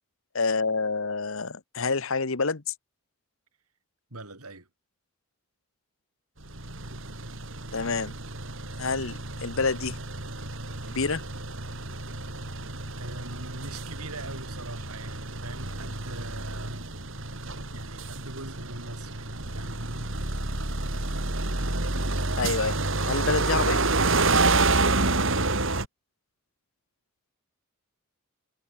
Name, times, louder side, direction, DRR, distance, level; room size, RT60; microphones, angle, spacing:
voice 1, 0.3-2.7 7.7-8.1 8.8-10.0 10.9-11.2 22.4-22.7 23.1-23.8, left 4 dB, 65° left, 1.2 m, -27 dB
voice 2, 4.1-4.7 13.0-16.9 17.7-19.8, right 2 dB, 85° right, 6.3 m, -42 dB
sound 1, 6.4-25.9, right 3 dB, 60° right, 3.8 m, -29 dB
head